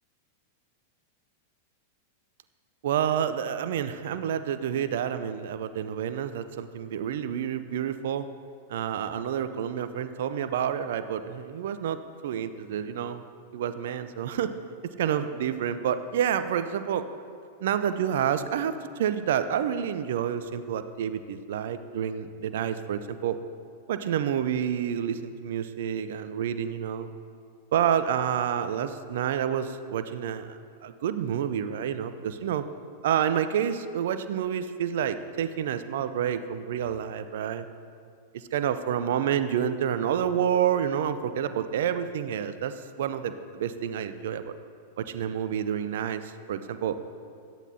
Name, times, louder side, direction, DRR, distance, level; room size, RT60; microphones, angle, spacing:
voice 1, 2.8-8.3 8.7-13.2 13.5-14.5 15.0-17.0 17.6-23.4 23.9-27.1 27.7-32.6 33.0-37.7 38.3-44.5 45.0-47.0, right 9 dB, 60° right, 11 dB, 0.6 m, -29 dB
17.0 x 12.0 x 2.8 m, 2.3 s
figure-of-eight pair, 95°, 0 cm